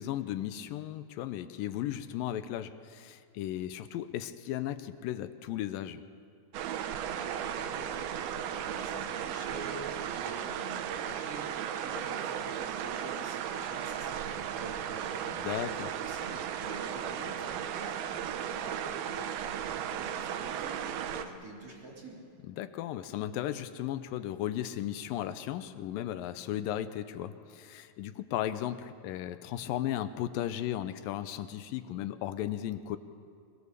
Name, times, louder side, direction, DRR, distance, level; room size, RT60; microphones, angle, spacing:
voice 1, 0.0-6.0 15.4-15.9 22.4-33.0, left 12 dB, 80° left, 11 dB, 2.1 m, -35 dB
sound 1, 6.5-21.3, right 9 dB, 75° right, 2.7 m, -36 dB
voice 2, 7.1-15.4 16.0-22.2, right 1 dB, 25° right, -2 dB, 3.6 m, -47 dB
22.5 x 21.5 x 6.8 m, 2.3 s
omnidirectional pair, 4.6 m